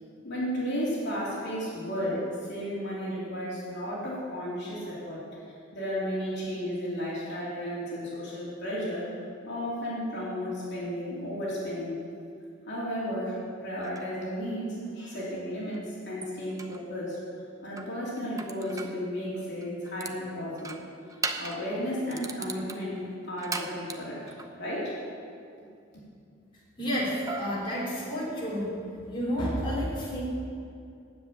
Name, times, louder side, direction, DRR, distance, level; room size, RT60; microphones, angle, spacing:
voice 1, 0.2-5.4 5.7-9.1 9.4-12.0 12.7-17.2 17.6-20.8 21.4-23.0 23.3-24.2 24.6-25.0, equal, 60° left, -6 dB, 2.9 m, -33 dB
sound 1, 13.8-14.1 15.7-15.8 16.2-16.8 17.8-19.0 19.6-20.2 20.6-21.7 22.1-24.5 27.3-28.5, right 3 dB, 15° right, 0.6 m, -38 dB
voice 2, 26.8-28.8 29.1-30.2, equal, 25° left, -6 dB, 3.4 m, -30 dB
9.9 x 7.5 x 8.7 m, 2.5 s
head